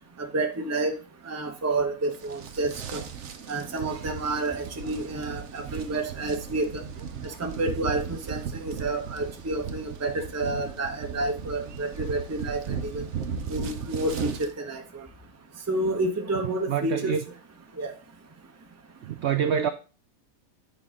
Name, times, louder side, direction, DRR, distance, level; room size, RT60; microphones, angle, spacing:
voice 1, 0.2-0.9 1.3-3.0 3.5-6.8 7.4-13.0 13.5-14.3 14.6-14.8 15.7-17.2 17.8-17.9, right 2 dB, 15° right, 0.7 m, -29 dB
sound 1, 2.1-14.5, right 6 dB, 55° right, 1.0 m, -36 dB
voice 2, 16.7-17.2 19.0-19.7, right 8 dB, 70° right, 0.6 m, -26 dB
8.7 x 5.1 x 3.7 m
omnidirectional pair, 1.7 m